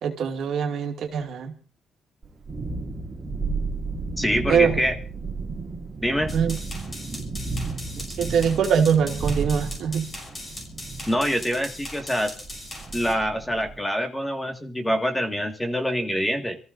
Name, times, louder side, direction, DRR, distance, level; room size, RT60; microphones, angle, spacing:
voice 1, 0.0-1.5 4.5-4.8 6.3-6.6 8.0-10.1, right 7 dB, 70° right, 3 dB, 2.3 m, -23 dB
Thunderstorm, 2.2-13.8, right 4 dB, 35° right, 2.7 m, -33 dB
voice 2, 4.2-5.0 6.0-6.4 11.1-12.3 12.9-16.6, equal, 10° left, 5 dB, 1.8 m, -25 dB
sound 1, 6.3-13.1, left 1 dB, 30° left, 5.9 m, -39 dB
27.5 x 14.5 x 2.6 m, 0.38 s
cardioid pair, 90°, 0 cm